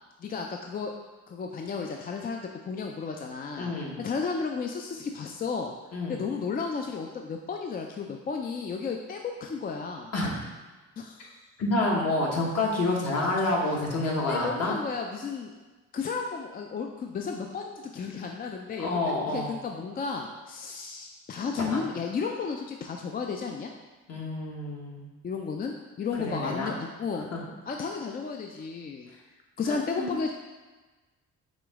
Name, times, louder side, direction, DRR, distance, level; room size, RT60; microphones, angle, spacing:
voice 1, 0.2-0.9 1.3-3.7 4.0-5.7 6.1-10.1 11.0-11.4 14.3-15.5 15.9-23.7 25.2-27.3 27.7-29.1 29.6-30.3, left 5 dB, 30° left, 2 dB, 0.4 m, -33 dB
voice 2, 3.6-4.0 5.9-6.2 10.1-10.3 11.6-14.8 18.8-19.5 21.6-21.8 24.1-25.1 26.2-26.7 27.3-27.4 29.7-30.1, left 2 dB, 55° left, -2 dB, 1.2 m, -28 dB
5.0 x 3.0 x 3.5 m, 1.2 s
cardioid pair, 90°, 30 cm